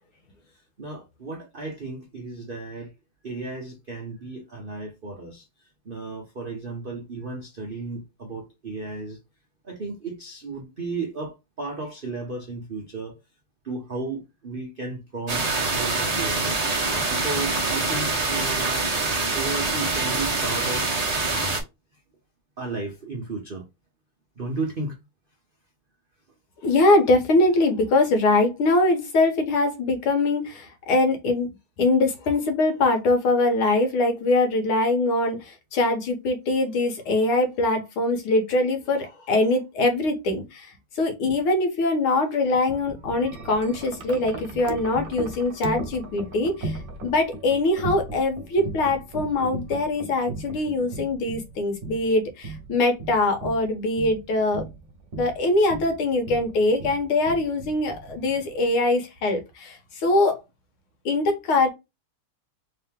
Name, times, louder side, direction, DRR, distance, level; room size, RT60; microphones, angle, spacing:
voice 1, 0.8-2.9 3.2-9.2 9.6-13.2 13.6-16.6 17.1-18.9 19.3-21.0 22.6-23.6 24.4-25.0, right 3 dB, 70° right, 0.5 m, -34 dB
sound 1, 15.3-21.6, right 3 dB, 30° right, 0.7 m, -25 dB
voice 2, 26.6-31.5 31.8-54.7 55.2-60.4 61.1-61.7, left 2 dB, 80° left, 1.9 m, -23 dB
Wind chime, 42.5-58.7, right 2 dB, 50° right, 1.4 m, -37 dB
3.9 x 2.9 x 3.5 m
omnidirectional pair, 2.3 m